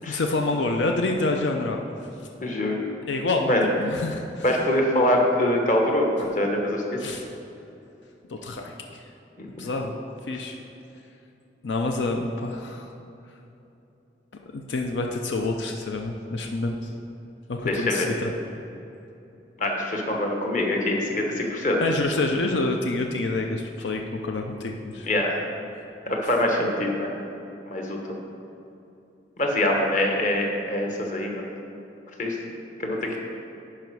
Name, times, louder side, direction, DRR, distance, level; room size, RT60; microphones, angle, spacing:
voice 1, 0.0-1.8 3.1-4.5 7.0-7.2 8.3-9.0 9.6-9.9 10.3-10.5 11.6-12.9 14.5-16.9 17.5-18.3 21.8-25.1, left 2 dB, 90° left, 3 dB, 0.6 m, -27 dB
voice 2, 2.4-2.8 3.5-3.6 4.4-6.8 9.4-9.5 17.6-18.1 19.6-21.8 25.0-25.4 26.1-27.1 27.7-28.0 29.4-31.5 32.2-32.4 32.8-33.2, left 1 dB, 45° left, 1 dB, 1.2 m, -24 dB
10.5 x 5.0 x 4.7 m, 2.9 s
head